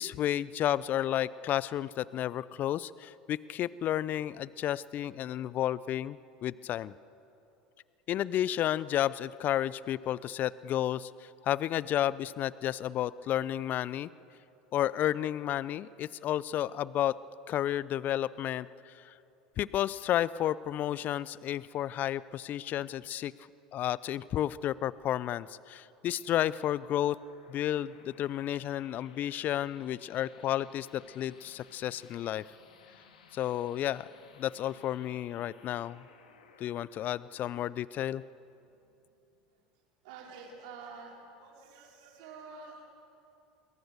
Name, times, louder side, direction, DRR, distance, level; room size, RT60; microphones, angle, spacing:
voice 1, 0.0-6.9 8.1-14.1 14.7-17.2 17.5-19.1 19.6-23.3 23.7-27.2 27.5-32.4 33.3-34.1 34.4-36.0 36.6-38.2, left 12 dB, 45° left, 19 dB, 0.6 m, -32 dB
sound 1, 26.3-39.4, left 6 dB, 80° left, 2.5 m, -60 dB
voice 2, 40.0-42.9, right 4 dB, 65° right, 1 dB, 4.9 m, -48 dB
30.0 x 22.0 x 6.8 m, 2.8 s
hypercardioid pair, 75°, 4 cm